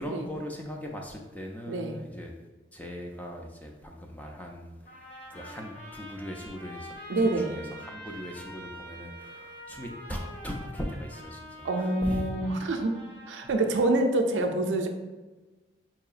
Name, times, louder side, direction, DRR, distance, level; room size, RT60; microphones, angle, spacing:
voice 1, 0.0-2.3 2.7-12.3, equal, 10° left, 1 dB, 0.3 m, -39 dB
voice 2, 1.7-2.0 7.1-7.6 11.6-13.0 13.3-14.9, right 2 dB, 85° right, 4 dB, 0.4 m, -26 dB
Trumpet, 4.8-13.9, equal, 40° left, 0.9 m, -45 dB
4.6 x 2.8 x 2.4 m, 1.2 s
head